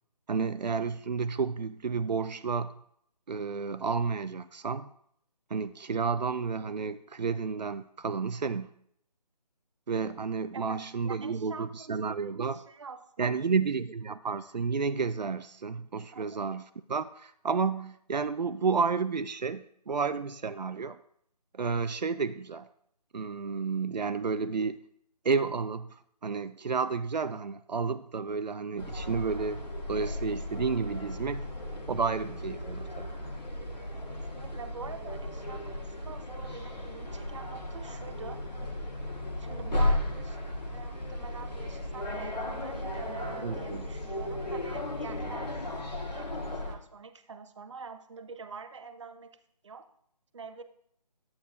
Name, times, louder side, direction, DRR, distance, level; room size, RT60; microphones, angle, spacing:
voice 1, 0.3-2.8 3.3-4.9 5.5-8.7 9.9-12.6 13.2-16.6 16.9-21.0 21.5-22.7 23.1-24.8 25.2-29.6 29.9-31.5 31.9-33.1 43.4-43.9, right 5 dB, 85° right, 12 dB, 0.4 m, -31 dB
voice 2, 10.5-11.9 12.5-13.6 16.1-16.4 34.1-38.4 39.4-49.9 50.3-50.6, right 5 dB, 45° right, 10 dB, 0.7 m, -46 dB
sound 1, 28.8-46.7, left 1 dB, 85° left, 1.5 m, -35 dB
11.0 x 8.6 x 2.5 m, 0.68 s
figure-of-eight pair, 150°, 21 cm